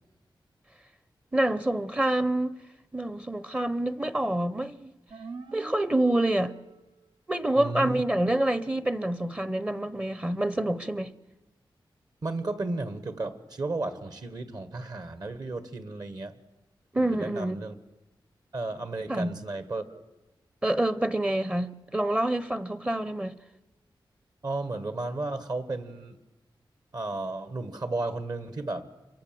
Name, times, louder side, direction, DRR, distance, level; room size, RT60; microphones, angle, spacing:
voice 1, 1.3-2.6 2.9-4.9 5.5-6.5 7.3-11.1 16.9-17.6 19.1-19.3 20.6-23.4, right 1 dB, 15° right, 0.8 m, -27 dB
sound 1, 5.1-7.1, right 4 dB, 70° right, 1.2 m, -44 dB
voice 2, 7.6-8.0 12.2-16.3 17.0-17.7 18.5-20.0 24.4-26.2 26.9-28.9, right 2 dB, 50° right, 1.7 m, -33 dB
26.5 x 23.0 x 7.7 m
wide cardioid pair, 145°, 8 cm